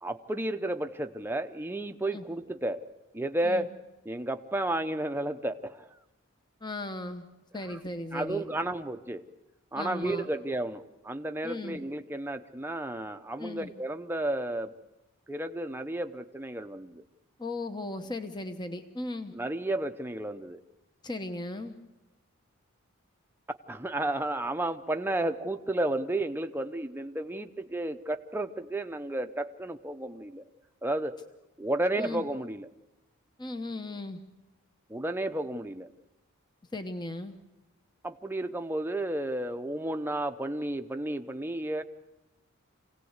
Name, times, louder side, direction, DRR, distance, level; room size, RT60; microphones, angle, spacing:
voice 1, 0.0-2.8 3.1-3.7 4.1-5.9 8.1-9.2 9.7-14.7 15.3-17.0 19.3-20.6 23.7-30.4 30.8-31.2 31.6-32.7 34.9-35.9 38.0-41.8, right 1 dB, 10° right, 7 dB, 0.7 m, -32 dB
voice 2, 6.6-7.3 7.5-8.4 9.7-10.3 11.4-11.8 13.4-13.7 17.4-19.3 21.0-21.8 32.0-32.2 33.4-34.2 36.7-37.4, left 2 dB, 20° left, 7 dB, 0.9 m, -37 dB
26.0 x 17.5 x 8.1 m, 1.1 s
head